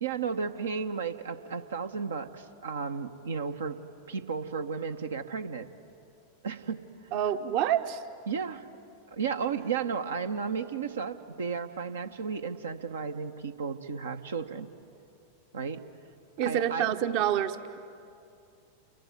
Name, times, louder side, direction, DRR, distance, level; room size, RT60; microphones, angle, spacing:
voice 1, 0.0-3.8 4.1-5.7 6.4-6.8 8.3-8.7 9.1-14.7 15.5-15.8 16.4-16.9, right 6 dB, 70° right, 7 dB, 1.0 m, -33 dB
voice 2, 7.1-8.0 16.4-17.8, right 10 dB, 45° right, 10 dB, 1.0 m, -27 dB
28.5 x 22.5 x 9.3 m, 2.6 s
figure-of-eight pair, 90°, 0 cm